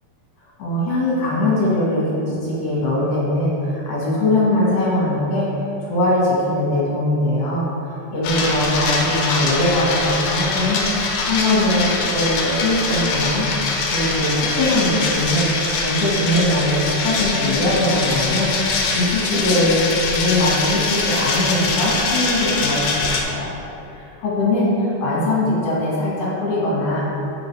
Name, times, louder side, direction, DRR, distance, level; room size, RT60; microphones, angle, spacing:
voice 1, 0.6-5.5 5.9-7.7 8.1-10.9 11.2-13.5 13.9-15.5 15.8-19.8 20.1-23.5 23.9-27.1, left 1 dB, 55° left, -6 dB, 2.1 m, -21 dB
sound 1, 8.2-23.2, left 3 dB, 75° left, 1.8 m, -23 dB
8.3 x 4.8 x 3.2 m, 2.9 s
omnidirectional pair, 4.0 m